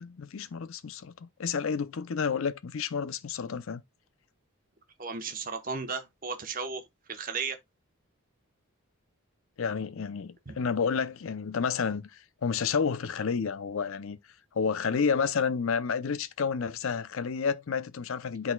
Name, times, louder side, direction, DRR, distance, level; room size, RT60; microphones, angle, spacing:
voice 1, 0.0-3.8 9.6-14.2 14.5-18.5, left 6 dB, 70° left, 0.5 m, -30 dB
voice 2, 5.0-6.8 7.1-7.6 10.5-10.6, right 4 dB, 40° right, 0.9 m, -34 dB
11.5 x 4.0 x 2.2 m
head